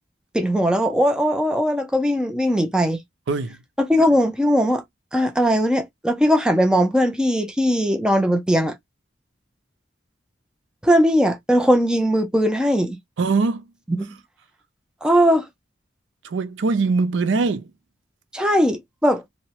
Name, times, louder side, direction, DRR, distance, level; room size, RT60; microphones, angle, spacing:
voice 1, 0.3-3.0 3.8-4.8 5.1-8.7 10.8-13.0 14.0-14.1 15.0-15.5 18.3-19.2, equal, 5° right, 0.4 m, -19 dB
voice 2, 3.3-3.6 13.2-13.7 16.2-17.7, right 4 dB, 75° right, 0.4 m, -22 dB
2.7 x 2.1 x 2.8 m
head